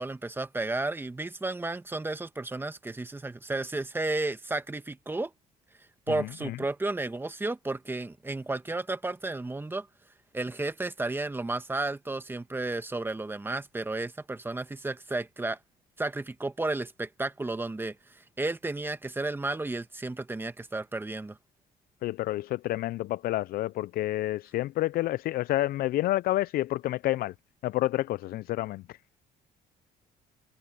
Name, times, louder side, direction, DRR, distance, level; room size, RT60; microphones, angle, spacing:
voice 1, 0.0-5.3 6.1-9.9 10.3-15.6 16.0-21.4, right 2 dB, 15° right, 1.4 m, -33 dB
voice 2, 6.2-6.6 22.0-27.3 27.6-28.8, left 15 dB, 65° left, 0.4 m, -29 dB
cardioid pair, 110°, 17 cm